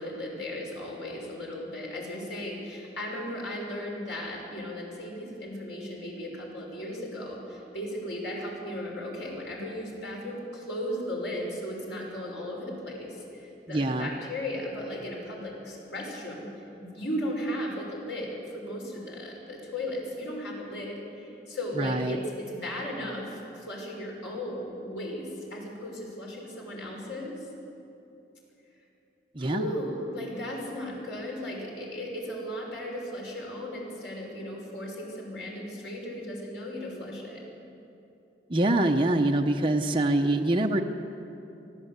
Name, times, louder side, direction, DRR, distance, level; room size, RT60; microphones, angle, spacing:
voice 1, 0.0-16.5 16.8-27.3 29.4-37.4, left 1 dB, 85° left, -2 dB, 6.1 m, -36 dB
voice 2, 13.7-14.1 21.8-22.2 29.3-29.7 38.5-40.8, right 1 dB, 30° right, 2 dB, 0.8 m, -25 dB
24.5 x 15.0 x 8.1 m, 2.9 s
head